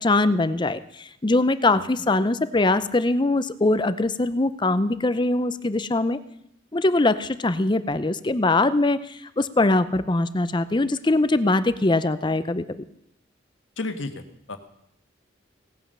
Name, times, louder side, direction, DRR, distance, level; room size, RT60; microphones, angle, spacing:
voice 1, 0.0-6.2 6.7-12.8, left 2 dB, 25° left, 14 dB, 0.6 m, -22 dB
voice 2, 13.8-14.2 14.5-14.6, left 2 dB, 85° left, 8 dB, 1.5 m, -32 dB
17.5 x 9.1 x 6.8 m, 0.79 s
head